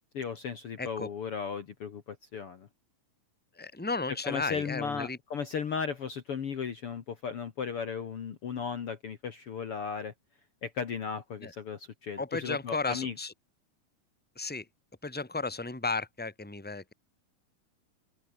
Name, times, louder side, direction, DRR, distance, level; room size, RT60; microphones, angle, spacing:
voice 1, 0.1-2.7 4.2-10.1 10.6-13.1, left 6 dB, 50° left, 2.4 m, -36 dB
voice 2, 0.8-1.1 3.5-5.2 11.4-11.5 12.2-13.3 14.3-14.7 15.0-16.9, left 3 dB, 5° left, 2.7 m, -34 dB
open air
omnidirectional pair, 3.7 m